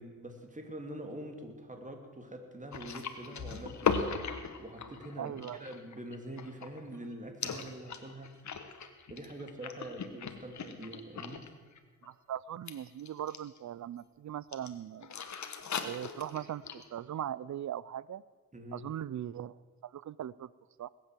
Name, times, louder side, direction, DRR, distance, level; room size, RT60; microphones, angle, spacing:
voice 1, 0.0-4.1 4.6-8.3 9.1-11.4 18.5-18.8, right 1 dB, 25° right, 5 dB, 2.8 m, -44 dB
sound 1, 2.7-7.1 7.4-11.5 11.8-12.1 12.7-13.6 14.5-14.7 15.0-16.9, left 6 dB, 60° left, 1.5 m, -38 dB
voice 2, 5.2-5.7 12.0-15.2 15.8-18.2 18.7-20.5 20.8-20.9, right 10 dB, 60° right, 20 dB, 0.6 m, -40 dB
20.0 x 8.6 x 7.5 m, 1.4 s
cardioid pair, 70°, 33 cm